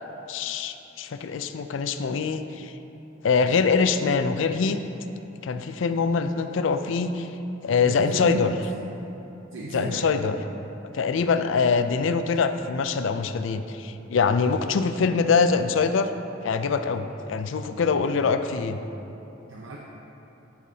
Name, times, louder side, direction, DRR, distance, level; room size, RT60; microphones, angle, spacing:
voice 1, 0.3-2.7 3.2-4.8 5.4-7.3 7.6-8.5 9.7-10.4 10.9-16.1 16.4-18.8, left 5 dB, 70° left, 9 dB, 0.4 m, -24 dB
voice 2, 7.8-8.8 9.5-10.1 19.5-19.8, right 2 dB, 80° right, -3 dB, 0.7 m, -33 dB
13.5 x 5.7 x 2.8 m, 3.0 s
head